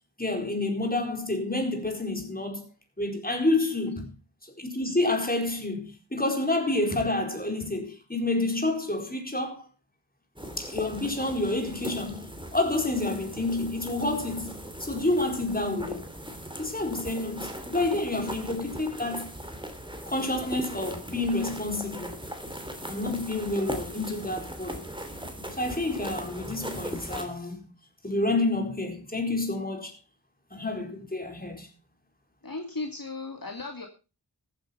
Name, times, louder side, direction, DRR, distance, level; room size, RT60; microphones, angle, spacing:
voice 1, 0.2-2.6 3.0-4.1 4.4-9.7 10.6-14.5 14.8-16.1 16.6-19.3 20.1-22.2 22.9-24.8 25.5-27.7 28.0-29.9 30.5-31.7, left 2 dB, 20° left, 4.5 m, -29 dB
sound 1, 10.4-27.2, equal, 10° right, 3.3 m, -39 dB
voice 2, 32.4-33.9, left 3 dB, 55° left, 2.5 m, -36 dB
14.5 x 9.1 x 5.7 m
wide cardioid pair, 45°, 42 cm